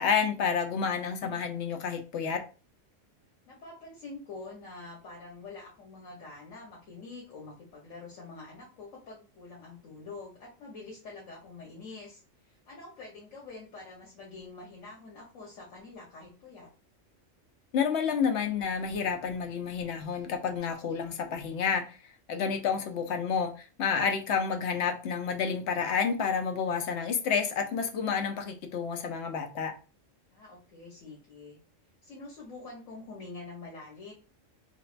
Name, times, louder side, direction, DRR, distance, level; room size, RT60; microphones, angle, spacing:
voice 1, 0.0-2.4 17.7-22.0 22.3-29.7, left 6 dB, 65° left, 0.9 m, -29 dB
voice 2, 3.5-16.7 30.3-31.6 32.0-34.1, left 3 dB, 90° left, 1.3 m, -46 dB
3.2 x 3.1 x 2.4 m
omnidirectional pair, 1.3 m